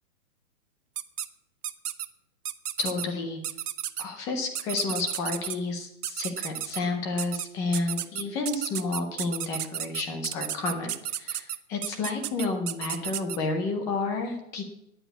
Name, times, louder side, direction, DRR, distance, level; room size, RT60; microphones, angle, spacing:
sound 1, 1.0-1.3 1.6-2.1 2.5-3.1 3.4-4.0 4.6-5.6 6.0-6.8 7.2-7.5 7.7-13.4, right 11 dB, 80° right, 1.0 m, -32 dB
voice 1, 2.8-3.4 4.0-14.6, left 3 dB, 5° left, 5 dB, 0.5 m, -30 dB
10.0 x 8.8 x 8.1 m, 0.82 s
hypercardioid pair, 155°, 45 cm